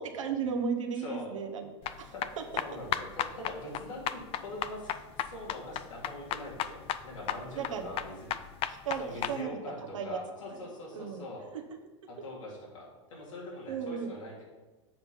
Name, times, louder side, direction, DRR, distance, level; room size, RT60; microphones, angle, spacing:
voice 1, 0.0-1.7 2.0-2.1 7.6-7.9 8.7-9.6 9.9-10.2 10.9-11.2 13.7-14.1, right 6 dB, 85° right, 3 dB, 1.0 m, -34 dB
voice 2, 0.9-1.3 2.1-2.2 2.6-8.3 9.0-11.5 12.1-14.4, left 1 dB, 85° left, -3 dB, 2.6 m, -43 dB
sound 1, 1.8-9.4, left 11 dB, 35° left, 0.4 m, -35 dB
7.6 x 4.6 x 5.4 m, 1.2 s
hypercardioid pair, 100°, 16 cm